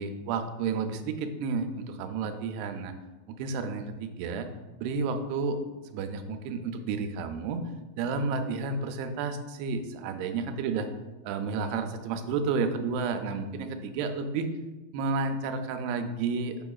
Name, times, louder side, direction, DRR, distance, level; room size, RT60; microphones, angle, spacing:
voice 1, 0.0-2.9 3.4-4.5 4.8-5.6 5.9-7.6 8.0-10.9 11.2-14.5 14.9-16.6, right 4 dB, 85° right, 7 dB, 2.6 m, -31 dB
7.2 x 5.7 x 2.3 m, 1.1 s
omnidirectional pair, 4.5 m